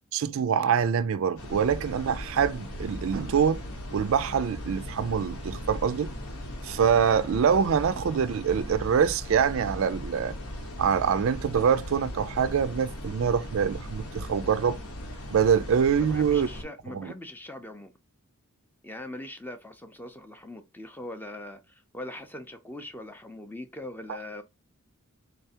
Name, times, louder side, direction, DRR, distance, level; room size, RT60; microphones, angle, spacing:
voice 1, 0.1-3.6 3.9-6.1 6.6-10.3 10.8-14.8 15.3-16.5 16.9-17.1, right 7 dB, 65° right, 0.4 m, -25 dB
sound 1, 1.4-16.6, equal, 80° left, 1.1 m, -38 dB
voice 2, 16.0-17.9 18.8-24.4, left 1 dB, 10° left, 0.5 m, -41 dB
4.0 x 3.3 x 2.8 m
head